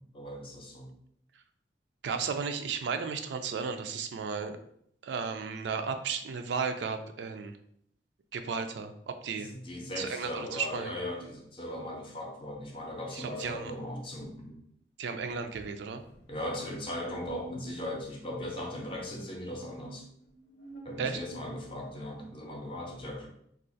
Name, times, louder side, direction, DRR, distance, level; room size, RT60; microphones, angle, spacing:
voice 1, 0.1-0.9 9.4-14.6 16.3-20.1 20.8-23.3, left 1 dB, 30° left, 1 dB, 0.6 m, -38 dB
voice 2, 2.0-4.6 5.0-7.6 8.3-9.5 10.0-10.9 13.1-13.7 15.0-16.0 21.0-21.2, right 5 dB, 70° right, 7 dB, 0.3 m, -34 dB
sound 1, 12.6-12.7 13.2-14.4 15.0-18.5 18.8-19.4 20.1-22.1, left 1 dB, 80° left, 0.7 m, -52 dB
2.4 x 2.4 x 3.8 m, 0.70 s
head